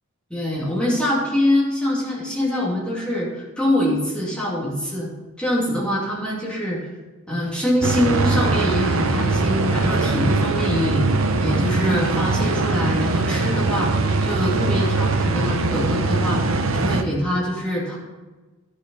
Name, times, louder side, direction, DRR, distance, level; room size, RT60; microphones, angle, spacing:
voice 1, 0.3-5.1 5.4-6.8 7.3-11.1 11.4-13.9 14.2-18.0, left 1 dB, 5° left, -5 dB, 2.5 m, -24 dB
sound 1, 7.8-17.0, right 3 dB, 65° right, 0.8 m, -21 dB
11.5 x 6.4 x 5.4 m, 1.2 s
head